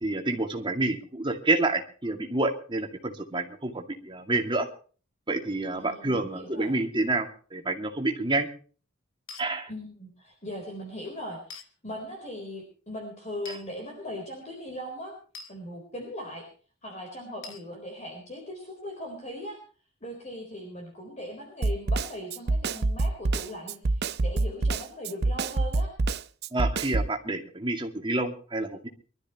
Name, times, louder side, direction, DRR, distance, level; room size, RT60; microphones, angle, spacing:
voice 1, 0.0-4.7 5.3-8.5 9.4-9.7 13.5-13.6 26.5-28.9, right 2 dB, 25° right, 3 dB, 2.2 m, -28 dB
voice 2, 5.7-6.7 9.7-15.1 15.5-16.5 16.8-19.6 20.0-25.9, equal, 35° left, 1 dB, 4.0 m, -39 dB
sound 1, 9.3-9.5 11.5-11.7 13.4-13.6 15.3-15.5 17.4-17.7, left 4 dB, 75° left, 1.5 m, -42 dB
Snare drum, 21.6-27.1, right 2 dB, 55° right, 0.6 m, -26 dB
24.0 x 13.0 x 3.0 m, 0.39 s
head